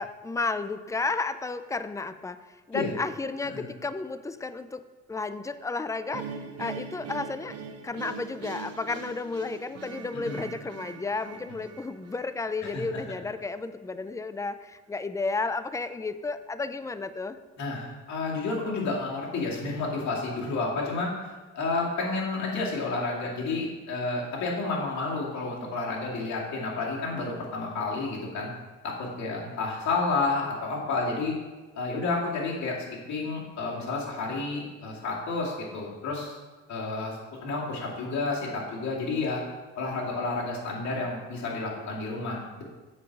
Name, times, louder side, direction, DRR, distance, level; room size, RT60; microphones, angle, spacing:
voice 1, 0.0-4.8 5.1-7.6 7.8-17.4, left 3 dB, 10° left, 12 dB, 0.4 m, -32 dB
sound 1, 6.1-13.2, right 5 dB, 55° right, 0.8 m, -42 dB
voice 2, 10.1-10.4 12.6-12.8 17.6-21.1 21.5-28.5 28.8-31.4 31.7-32.8 33.1-36.4 36.7-39.4 39.8-42.6, left 3 dB, 65° left, -4 dB, 2.3 m, -30 dB
7.3 x 4.6 x 5.9 m, 1.3 s
cardioid pair, 90°, 30 cm